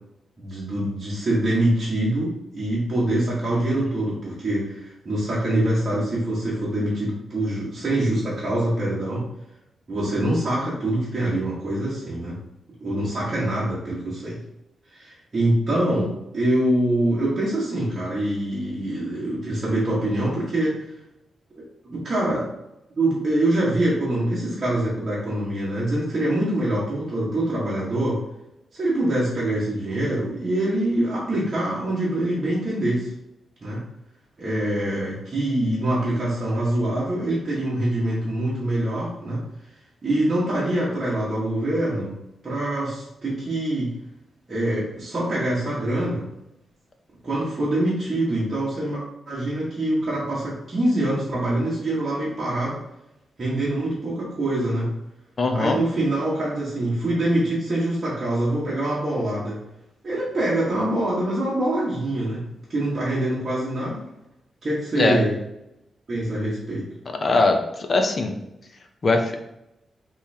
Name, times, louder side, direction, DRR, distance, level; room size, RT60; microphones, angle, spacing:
voice 1, 0.4-9.3 9.9-12.4 12.8-14.4 14.9-20.8 21.8-22.5 23.0-28.2 28.7-33.1 33.6-33.8 34.4-39.4 40.0-42.2 42.4-43.9 44.5-46.3 47.2-49.0 49.3-52.8 53.4-54.9 55.5-59.6 60.0-62.4 62.7-64.0 64.6-65.3 66.1-66.9, right 1 dB, 30° right, -8 dB, 1.3 m, -24 dB
voice 2, 55.4-55.8 65.0-65.2 67.2-68.4 69.0-69.4, left 3 dB, 35° left, 4 dB, 0.6 m, -21 dB
5.5 x 3.1 x 2.8 m, 0.85 s
wide cardioid pair, 145°, 0 cm